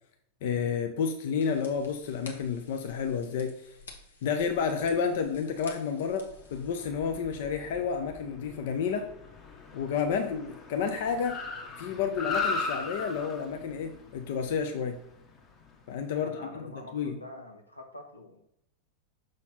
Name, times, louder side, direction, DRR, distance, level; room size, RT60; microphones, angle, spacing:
voice 1, 0.4-3.7 4.2-9.1 9.7-11.4 11.8-15.0 15.9-16.7 16.9-17.2, left 6 dB, 55° left, 6 dB, 0.6 m, -30 dB
sound 1, 1.4-6.8, left 3 dB, 70° left, 1.3 m, -51 dB
Car, 6.4-15.9, left 4 dB, 30° left, 1.5 m, -38 dB
voice 2, 16.1-18.4, left 1 dB, 85° left, 2 dB, 1.1 m, -46 dB
6.3 x 4.2 x 5.6 m, 0.74 s
figure-of-eight pair, 90°, 0 cm